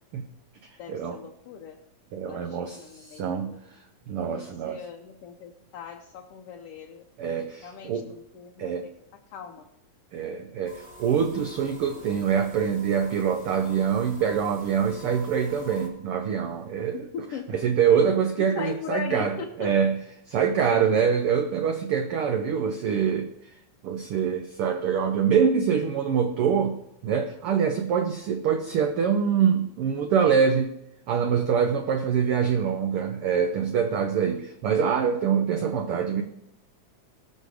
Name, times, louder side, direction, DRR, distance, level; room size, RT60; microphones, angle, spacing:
voice 1, 0.8-1.8 2.2-3.6 4.3-7.0 7.6-8.9 9.3-9.7 16.9-17.6 18.5-19.7, left 7 dB, 70° left, 1 dB, 1.5 m, -39 dB
voice 2, 2.1-3.6 4.1-4.8 7.2-8.1 8.6-8.9 10.1-17.1 17.5-20.0 20.3-23.3 23.8-30.7 31.1-36.2, right 7 dB, 90° right, 6 dB, 1.2 m, -25 dB
sound 1, 10.7-15.9, equal, 40° right, 2.1 m, -47 dB
19.0 x 6.5 x 4.9 m, 0.79 s
omnidirectional pair, 3.5 m